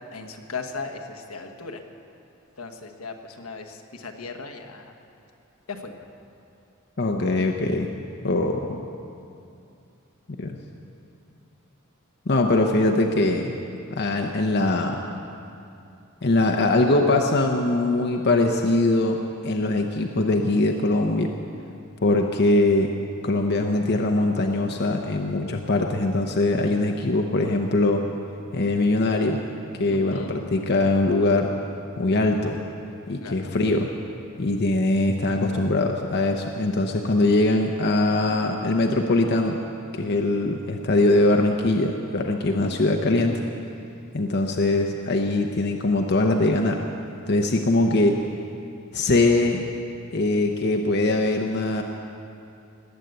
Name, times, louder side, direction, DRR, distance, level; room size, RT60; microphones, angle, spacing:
voice 1, 0.1-1.8 2.6-4.8 5.7-5.9 29.9-30.4 33.2-33.6 42.6-42.8, left 4 dB, 80° left, 4 dB, 1.3 m, -37 dB
voice 2, 7.0-7.9 8.2-8.8 10.3-10.6 12.3-13.5 13.9-15.0 16.2-21.3 22.0-22.9 23.2-28.0 28.5-29.4 29.8-31.5 32.0-32.6 33.1-33.9 34.4-39.6 39.9-43.4 44.1-46.8 47.3-48.2 48.9-49.7 50.1-51.8, left 2 dB, 50° left, 3 dB, 0.8 m, -22 dB
19.5 x 8.3 x 8.0 m, 2.6 s
head